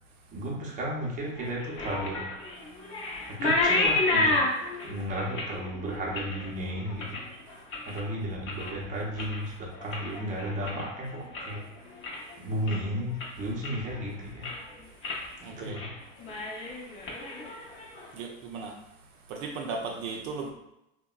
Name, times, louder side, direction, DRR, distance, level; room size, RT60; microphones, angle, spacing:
voice 1, 0.3-2.3 3.3-11.9 12.4-14.6 15.5-15.9, equal, 20° right, -3 dB, 0.6 m, -34 dB
sound 1, 1.4-8.0 8.4-8.8 9.1-11.6 11.9-12.3 12.7-12.8 13.2-14.0 14.3-14.7 15.0-15.2 15.6-15.9 16.2-18.1, left 2 dB, 30° left, 0.6 m, -31 dB
voice 2, 15.4-15.8 18.1-18.7 19.3-20.5, right 4 dB, 65° right, 1 dB, 0.6 m, -36 dB
2.7 x 2.1 x 2.3 m, 0.87 s
hypercardioid pair, 100°, 41 cm